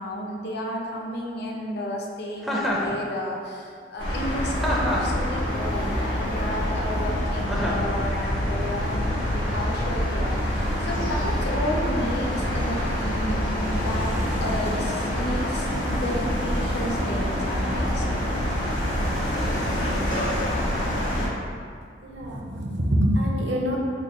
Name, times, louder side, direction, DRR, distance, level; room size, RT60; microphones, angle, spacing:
voice 1, 0.0-12.8 13.0-14.1 14.4-18.2, left 1 dB, 60° left, -1 dB, 0.5 m, -32 dB
Chuckle chortle, 2.4-2.9 4.6-5.2 7.5-7.9, equal, ahead, 0.4 m, -26 dB
sound 1, 4.0-21.3, equal, 85° left, 1.3 m, -26 dB
voice 2, 22.0-23.8, equal, 70° right, -1 dB, 0.6 m, -24 dB
3.8 x 2.1 x 4.0 m, 2.1 s
head